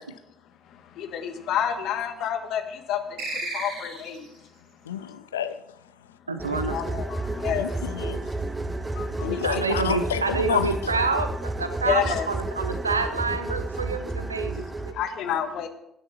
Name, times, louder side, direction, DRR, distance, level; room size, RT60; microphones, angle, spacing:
voice 1, 1.1-2.6 2.9-3.0 3.5-4.2 6.5-7.0 7.4-7.6 9.2-9.6 11.9-12.3 15.0-15.7, left 9 dB, 60° left, 1.5 m, -28 dB
sound 1, 3.2-4.4, right 2 dB, 60° right, 6.2 m, -33 dB
voice 2, 4.9-5.6 7.5-8.2 9.2-10.7 15.3-15.4, left 9 dB, 80° left, 0.5 m, -30 dB
voice 3, 6.3-7.0 9.4-14.9, right 3 dB, 85° right, 0.9 m, -28 dB
sound 2, 6.4-14.9, right 2 dB, 20° right, 1.4 m, -31 dB
16.0 x 10.5 x 4.4 m
figure-of-eight pair, 45°, 0 cm